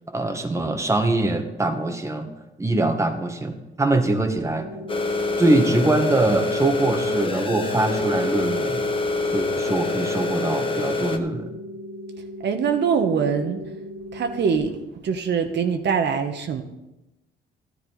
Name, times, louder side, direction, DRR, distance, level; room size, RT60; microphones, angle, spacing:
voice 1, 0.1-2.3 2.6-4.7 5.4-8.9 9.3-11.5, right 2 dB, 15° right, 6 dB, 1.2 m, -23 dB
sound 1, 4.6-14.6, equal, 90° right, 2.8 m, -38 dB
sound 2, 4.9-11.2, left 3 dB, 25° left, 1.1 m, -26 dB
voice 2, 12.4-13.6 14.1-14.8 15.0-16.6, right 6 dB, 60° right, 5 dB, 1.2 m, -23 dB
13.0 x 10.5 x 4.0 m, 0.95 s
cardioid pair, 90°, 20 cm